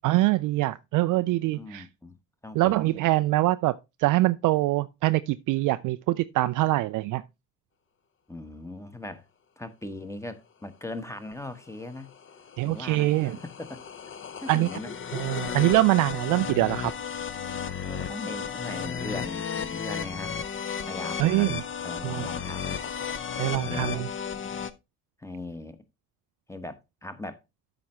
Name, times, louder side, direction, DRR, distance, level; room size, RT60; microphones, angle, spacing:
voice 1, 0.0-1.8 2.6-7.2 12.6-13.4 14.5-14.7 15.1-16.9 21.2-21.6 22.0-22.3 23.4-24.1, right 18 dB, 45° right, 0.4 m, -24 dB
voice 2, 1.5-2.2 2.4-3.0 8.3-9.3 9.6-12.1 12.6-13.9 14.4-14.9 16.1-16.2 16.5-16.6 17.8-20.3 20.9-21.5 21.8-22.8 23.3-24.1 25.2-25.8 26.5-27.4, left 2 dB, 5° left, 1.0 m, -39 dB
sound 1, 11.7-24.7, left 7 dB, 25° left, 0.7 m, -34 dB
12.5 x 5.2 x 3.0 m
figure-of-eight pair, 45°, 46 cm